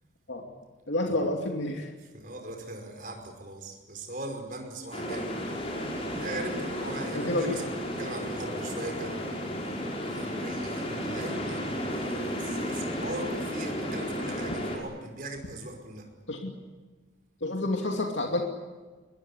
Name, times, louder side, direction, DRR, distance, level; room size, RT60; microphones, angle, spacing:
voice 1, 0.9-1.9 5.1-5.2 7.1-7.6 16.3-16.6 17.4-18.4, left 1 dB, 85° left, 1 dB, 2.7 m, -29 dB
voice 2, 2.0-5.4 6.1-9.8 10.0-16.1, right 1 dB, 50° right, 4 dB, 5.3 m, -39 dB
sound 1, 4.9-14.8, equal, 35° left, 5.3 m, -33 dB
22.0 x 21.5 x 10.0 m, 1.3 s
head